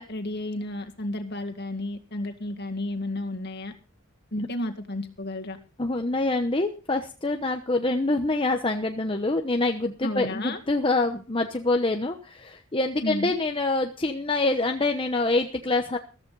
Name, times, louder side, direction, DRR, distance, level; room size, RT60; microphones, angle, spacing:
voice 1, 0.0-3.7 4.3-5.6 10.0-10.6 13.0-13.3, left 1 dB, 50° left, 5 dB, 2.1 m, -32 dB
voice 2, 5.8-16.0, left 2 dB, 25° left, 4 dB, 1.0 m, -26 dB
14.5 x 14.0 x 4.0 m, 0.35 s
head